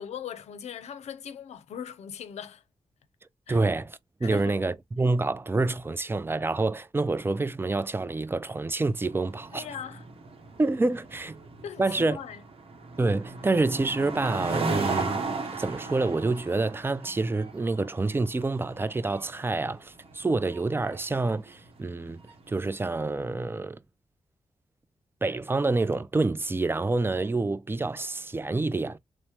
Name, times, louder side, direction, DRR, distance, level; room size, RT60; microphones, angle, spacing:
voice 1, 0.0-2.6 3.5-3.6 4.2-4.6 9.5-10.0 11.6-12.4, left 8 dB, 80° left, 0.5 m, -39 dB
voice 2, 3.5-9.7 10.6-11.4 11.8-12.2 13.0-22.2 22.5-23.8 25.2-29.0, right 3 dB, 20° right, 0.4 m, -27 dB
sound 1, 9.0-22.5, right 3 dB, 60° right, 0.8 m, -36 dB
3.2 x 2.0 x 2.8 m
supercardioid pair, 45°, 11 cm